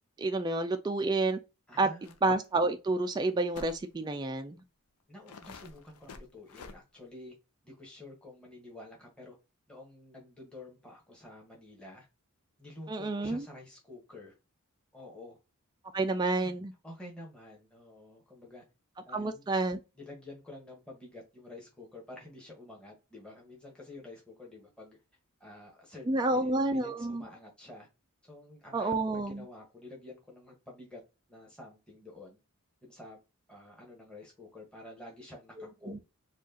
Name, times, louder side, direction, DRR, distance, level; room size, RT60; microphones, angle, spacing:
voice 1, 0.2-1.4 1.8-1.9 2.2-4.6 12.9-13.4 15.9-16.7 19.1-19.8 26.1-27.2 28.7-29.4 35.8-36.0, right 2 dB, 20° right, 0.3 m, -29 dB
voice 2, 1.7-2.1 5.1-7.3 7.6-9.3 9.7-12.1 12.6-14.3 14.9-15.4 16.8-18.6 19.0-19.5 19.9-25.0 25.4-27.9 28.2-31.0 31.3-32.4 32.8-33.2 33.5-35.9, left 2 dB, 5° left, 1.3 m, -49 dB
sound 1, 2.0-2.2 2.4-2.5 3.5-3.8 4.6-4.7 5.3-6.8, left 4 dB, 85° left, 0.5 m, -48 dB
4.6 x 2.4 x 2.8 m
head